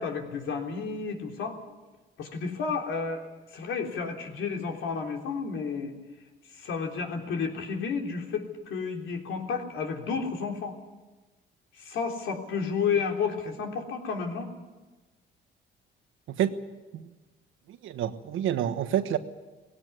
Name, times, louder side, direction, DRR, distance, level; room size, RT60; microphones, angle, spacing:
voice 1, 0.0-1.6 2.2-3.3 3.5-5.9 6.6-10.7 11.8-14.5, left 5 dB, 80° left, 2 dB, 3.6 m, -31 dB
voice 2, 16.3-16.6 16.9-17.1 17.7-19.2, right 10 dB, 85° right, 9 dB, 1.3 m, -28 dB
18.5 x 17.0 x 9.6 m, 1.2 s
cardioid pair, 90°, 20 cm